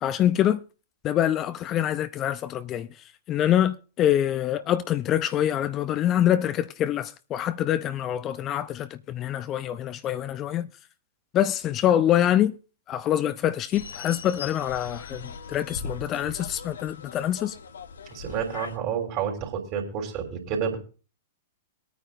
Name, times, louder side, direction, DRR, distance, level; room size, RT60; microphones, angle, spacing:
voice 1, 0.0-0.6 1.0-2.9 3.3-10.7 11.3-12.6 12.9-17.6, left 11 dB, 30° left, 0.6 m, -25 dB
sound 1, 13.7-18.8, left 5 dB, 70° left, 1.1 m, -40 dB
voice 2, 18.1-20.8, right 7 dB, 40° right, 3.6 m, -29 dB
23.5 x 9.3 x 2.6 m
figure-of-eight pair, 105°, 0 cm